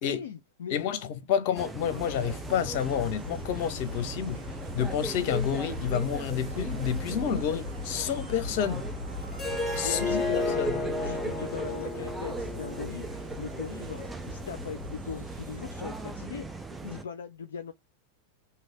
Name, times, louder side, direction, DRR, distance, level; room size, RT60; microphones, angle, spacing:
voice 1, 0.0-1.0 1.3-1.6 9.8-13.1 13.4-16.5 16.8-17.7, left 7 dB, 65° left, 0.4 m, -39 dB
voice 2, 0.7-4.4 4.7-8.9 9.8-10.8, left 8 dB, 45° left, 0.8 m, -29 dB
sound 1, 1.6-17.0, right 3 dB, 10° right, 0.5 m, -39 dB
Insect, 1.8-16.8, left 3 dB, 75° right, 1.2 m, -41 dB
Harp, 9.3-14.5, left 2 dB, 15° left, 1.3 m, -33 dB
3.1 x 2.9 x 3.9 m
figure-of-eight pair, 90°, 0 cm